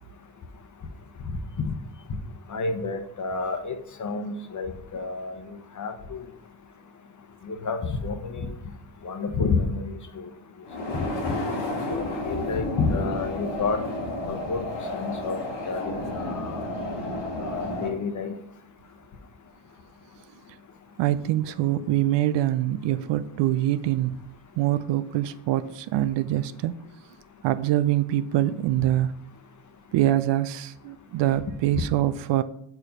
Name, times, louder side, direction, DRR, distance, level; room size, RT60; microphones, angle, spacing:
voice 1, 2.5-6.2 7.4-8.5 9.0-10.3 11.2-11.3 11.9-13.8 14.3-14.7 14.9-15.4 15.7-16.6 17.4-18.3, left 4 dB, 40° left, 1.1 m, -30 dB
sound 1, 10.6-17.9, left 1 dB, 65° left, 2.2 m, -31 dB
voice 2, 21.0-24.2 24.6-26.7 27.4-29.2 29.9-32.4, right 13 dB, 65° right, 0.5 m, -24 dB
4.9 x 4.7 x 5.7 m
supercardioid pair, 70°, 47 cm